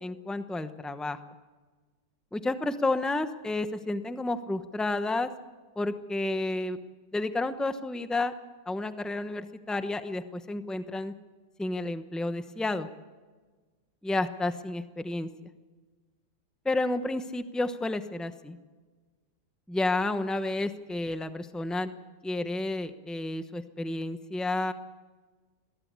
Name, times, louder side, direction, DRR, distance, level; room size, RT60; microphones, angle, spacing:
voice 1, 0.0-1.2 2.3-5.3 5.8-6.8 7.1-8.3 8.7-11.1 11.6-12.9 14.0-15.3 16.6-18.6 19.7-21.9 22.2-24.7, left 2 dB, ahead, 10 dB, 0.4 m, -31 dB
22.0 x 15.5 x 8.3 m, 1.3 s
omnidirectional pair, 1.9 m